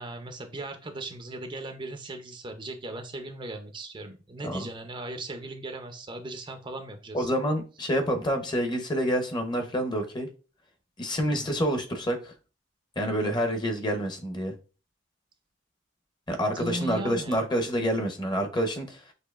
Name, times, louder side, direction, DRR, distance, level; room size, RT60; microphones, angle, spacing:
voice 1, 0.0-7.3 11.3-11.5 16.4-17.4, right 2 dB, 25° right, 6 dB, 0.5 m, -38 dB
voice 2, 7.1-10.3 11.0-12.3 13.0-14.5 16.3-19.0, equal, 25° left, 5 dB, 0.8 m, -28 dB
6.6 x 2.8 x 2.4 m, 0.33 s
head